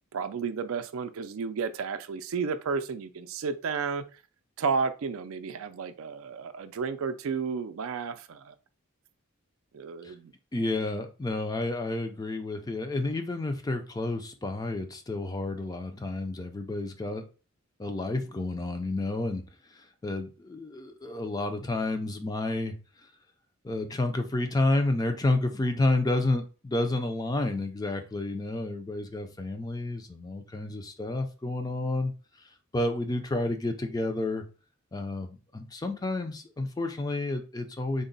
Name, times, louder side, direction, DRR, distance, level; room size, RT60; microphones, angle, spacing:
voice 1, 0.1-4.0 4.6-8.5 9.7-10.3, right 5 dB, 70° right, 0.4 m, -32 dB
voice 2, 10.5-17.2 17.8-19.4 19.7-22.8 23.6-32.1 32.7-34.4 34.9-38.0, left 2 dB, 20° left, 0.4 m, -30 dB
3.7 x 2.1 x 3.9 m
head